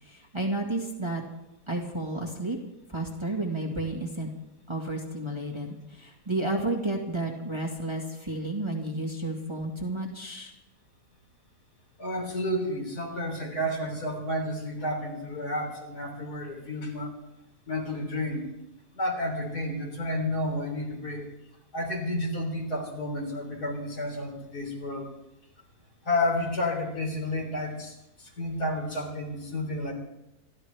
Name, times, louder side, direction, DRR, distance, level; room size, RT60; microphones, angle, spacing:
voice 1, 0.0-1.2 1.7-2.6 2.9-4.3 4.7-10.5, right 2 dB, 15° right, -1 dB, 1.8 m, -31 dB
voice 2, 12.0-17.1 17.7-18.5 18.9-21.3 21.7-25.1 26.0-29.9, left 1 dB, 70° left, 0 dB, 4.1 m, -31 dB
28.0 x 12.5 x 3.4 m, 0.89 s
omnidirectional pair, 1.7 m